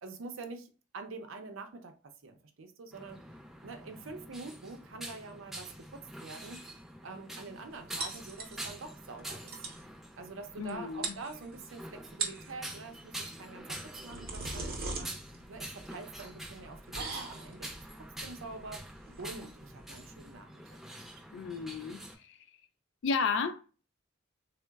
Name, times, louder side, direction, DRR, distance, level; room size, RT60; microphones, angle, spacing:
voice 1, 0.0-3.2 3.6-6.6 7.0-9.5 10.2-15.2 15.5-18.9 19.2-21.0, right 3 dB, 80° right, 0.6 m, -46 dB
sound 1, 2.9-22.1, right 1 dB, ahead, 0.5 m, -46 dB
sound 2, 8.0-8.9 9.2-9.3 9.5-9.8 10.7-10.8 11.0-11.7 12.1-12.5 13.7-20.3, right 4 dB, 50° right, 0.7 m, -40 dB
voice 2, 10.6-11.2 21.3-22.4 23.0-23.7, left 5 dB, 60° left, 0.3 m, -33 dB
3.8 x 2.1 x 2.2 m
head